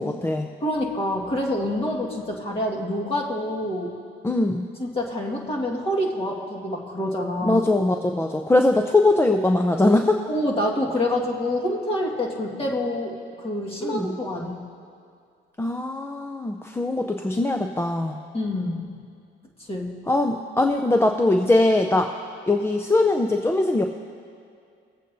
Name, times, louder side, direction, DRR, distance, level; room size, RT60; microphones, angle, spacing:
voice 1, 0.0-0.5 4.2-4.7 7.4-10.2 13.8-14.2 15.6-18.2 20.1-22.1 22.5-23.8, left 2 dB, 10° left, 4 dB, 0.5 m, -21 dB
voice 2, 0.6-3.9 4.8-7.6 10.3-14.6 18.3-18.9 19.7-19.9, left 1 dB, 30° left, -2 dB, 1.7 m, -27 dB
20.5 x 8.2 x 2.7 m, 2.3 s
cardioid pair, 90°, 20 cm